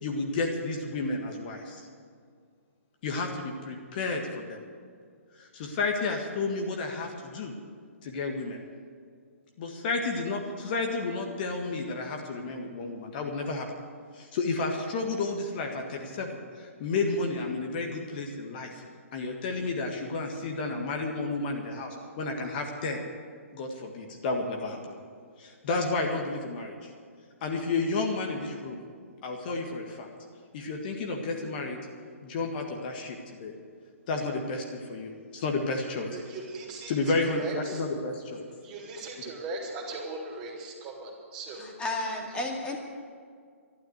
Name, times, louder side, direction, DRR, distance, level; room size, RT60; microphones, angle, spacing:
voice 1, 0.0-1.9 3.0-4.6 5.4-7.5 8.0-8.6 9.6-13.7 14.1-18.8 19.1-23.0 23.5-24.9 25.4-26.9 27.4-28.8 29.2-30.1 30.5-31.8 32.2-33.5 34.1-36.1 36.9-38.5, left 3 dB, 40° left, 2 dB, 1.8 m, -31 dB
voice 2, 36.1-37.8 38.6-41.7, right 2 dB, 25° right, -2 dB, 3.2 m, -39 dB
voice 3, 41.6-42.8, left 2 dB, 15° left, 0 dB, 2.2 m, -32 dB
12.5 x 12.0 x 8.2 m, 2.1 s
figure-of-eight pair, 125°, 8 cm